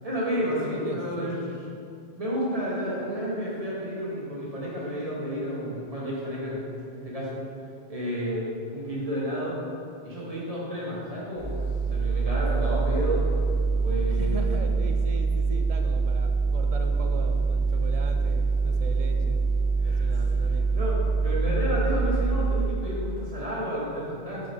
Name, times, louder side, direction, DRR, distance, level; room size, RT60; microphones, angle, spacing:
voice 1, 0.0-1.4 2.1-6.6 6.9-7.4 7.9-9.6 10.0-11.6 11.9-13.3 13.8-14.5 19.8-20.0 20.3-24.5, equal, 35° right, -6 dB, 1.3 m, -31 dB
voice 2, 0.6-1.6 14.1-19.4 19.8-20.8, right 4 dB, 50° right, 4 dB, 0.4 m, -38 dB
sound 1, 11.4-22.6, right 4 dB, 75° left, 1.7 m, -25 dB
6.4 x 4.7 x 3.5 m, 2.5 s
omnidirectional pair, 1.1 m